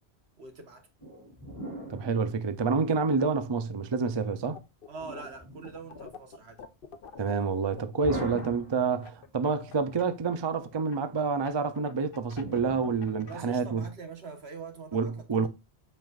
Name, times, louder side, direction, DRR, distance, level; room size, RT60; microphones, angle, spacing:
voice 1, 0.4-0.9 4.9-6.6 8.3-8.4 13.3-15.5, right 5 dB, 75° right, 1.5 m, -44 dB
sound 1, 1.0-3.3 5.0-6.2 8.0-9.4 12.4-13.8, equal, 15° left, 2.8 m, -42 dB
voice 2, 1.9-4.6 7.2-13.8 14.9-15.5, right 5 dB, 35° right, 0.5 m, -28 dB
sound 2, 4.5-5.4 5.6-10.0 10.8-13.4, left 6 dB, 60° left, 0.9 m, -47 dB
7.7 x 5.4 x 2.4 m
omnidirectional pair, 1.1 m